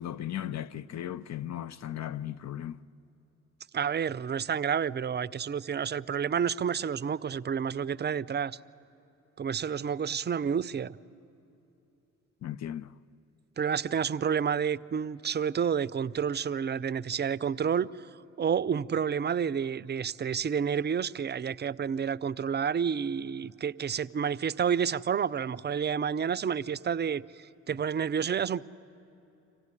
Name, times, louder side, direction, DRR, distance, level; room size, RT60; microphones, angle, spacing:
voice 1, 0.0-2.8 12.4-12.9, left 11 dB, 60° left, 0.6 m, -36 dB
voice 2, 3.7-8.6 9.4-11.0 13.6-18.1 18.4-28.6, right 7 dB, 35° right, 0.5 m, -30 dB
25.5 x 16.0 x 9.8 m
supercardioid pair, 55°, 31 cm